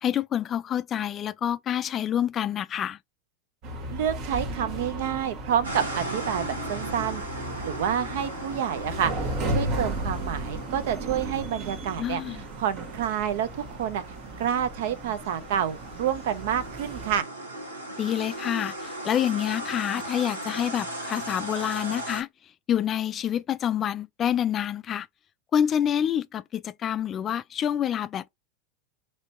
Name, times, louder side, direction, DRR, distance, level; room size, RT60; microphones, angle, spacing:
voice 1, 0.0-3.0 12.0-12.4 18.0-22.3 22.7-25.1 25.5-28.3, left 10 dB, 35° left, 0.3 m, -27 dB
sound 1, 3.6-17.2, right 1 dB, 45° right, 1.0 m, -35 dB
voice 2, 3.9-7.2 7.6-12.2 12.6-14.0 14.4-17.3, right 9 dB, 65° right, 0.6 m, -28 dB
sound 2, 5.6-22.2, right 1 dB, 90° right, 1.4 m, -38 dB
3.1 x 2.8 x 4.1 m
figure-of-eight pair, 85°, 0 cm